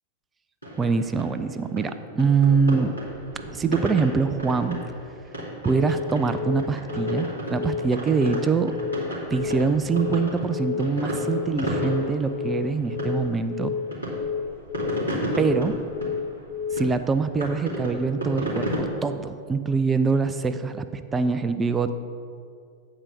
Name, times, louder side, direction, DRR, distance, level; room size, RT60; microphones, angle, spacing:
sound 1, 0.6-18.8, right 1 dB, 90° left, 2.4 m, -33 dB
voice 1, 0.8-2.9 3.5-4.8 5.6-8.8 9.3-13.7 15.4-15.7 16.7-22.0, right 5 dB, 20° right, 10 dB, 0.4 m, -24 dB
Telephone, 5.7-6.0 6.3-6.6 6.9-7.2 7.5-7.8 8.1-8.4 8.7-9.0 9.3-9.6 9.9-10.2 10.5-10.8 11.1-11.4 11.7-12.0 12.3-12.6 12.9-13.2 13.5-13.8 14.1-14.4 14.7-15.0 15.3-15.6 15.9-16.2 16.5-16.8, left 7 dB, 55° left, 1.3 m, -30 dB
8.8 x 4.8 x 6.6 m, 2.4 s
figure-of-eight pair, 90°, 0 cm